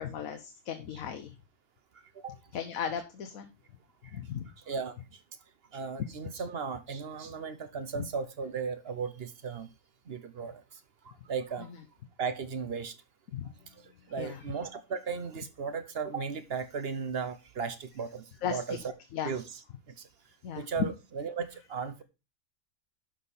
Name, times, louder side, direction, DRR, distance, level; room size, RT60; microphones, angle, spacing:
voice 1, 0.0-1.3 2.5-3.5 4.1-4.4 7.9-8.0 13.3-13.5 14.2-14.4 18.4-18.6 19.1-19.4 20.4-20.6, left 8 dB, 90° left, 7 dB, 1.3 m, -36 dB
voice 2, 4.6-5.2 5.7-9.7 10.1-11.7 12.2-13.0 13.7-18.8 19.2-19.4 19.9-20.1 20.5-22.0, right 5 dB, 50° right, 11 dB, 1.0 m, -36 dB
12.0 x 5.1 x 4.2 m, 0.29 s
omnidirectional pair, 1.4 m